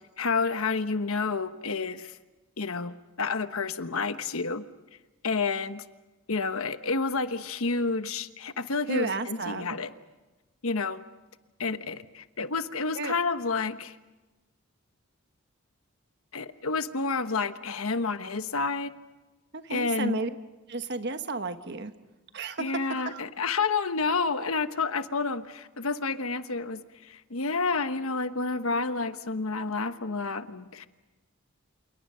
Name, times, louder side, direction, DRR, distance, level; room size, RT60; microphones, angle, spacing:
voice 1, 0.2-2.1 2.6-4.6 5.2-5.8 6.3-9.9 10.6-11.0 11.6-13.9 16.3-18.9 19.7-20.2 22.6-30.9, left 4 dB, 75° left, 10 dB, 1.2 m, -29 dB
voice 2, 8.9-9.7 12.9-13.2 19.5-20.3 20.7-21.9 22.3-23.2, right 3 dB, 50° right, 9 dB, 1.3 m, -32 dB
28.5 x 28.5 x 5.7 m, 1.1 s
head